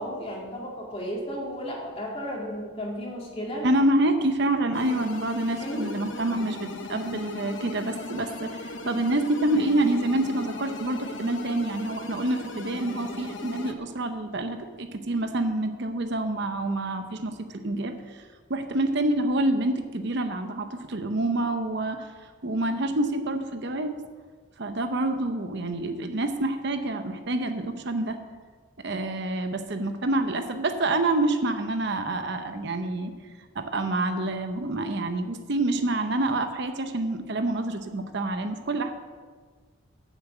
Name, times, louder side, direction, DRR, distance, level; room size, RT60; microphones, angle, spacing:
voice 1, 0.0-3.7 5.6-5.9, equal, 30° left, -2 dB, 2.5 m, -34 dB
voice 2, 3.6-23.9 24.6-28.2 28.8-33.1 33.5-38.9, right 1 dB, 55° right, 7 dB, 0.8 m, -27 dB
sound 1, 4.7-13.7, left 2 dB, 65° left, 0.9 m, -38 dB
9.4 x 7.4 x 7.9 m, 1.5 s
head